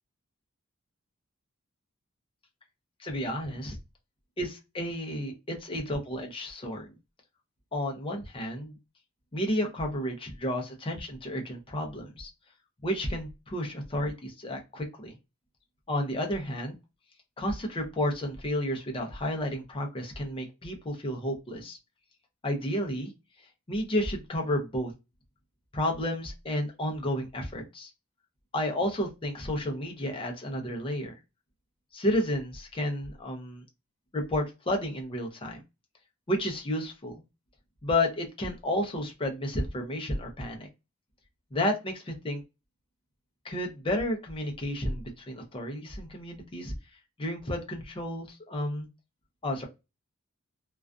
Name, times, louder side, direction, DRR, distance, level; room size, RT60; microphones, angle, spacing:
voice 1, 3.0-3.8 4.4-6.9 7.7-8.8 9.3-12.3 12.8-15.1 15.9-16.7 17.4-21.8 22.4-23.1 23.7-24.9 25.7-27.9 28.5-31.1 31.9-33.6 34.1-35.6 36.3-37.2 37.8-40.7 41.5-42.4 43.4-46.7 47.2-48.9 49.4-49.7, left 1 dB, 25° left, 2 dB, 0.5 m, -31 dB
2.4 x 2.3 x 2.2 m, 0.26 s
head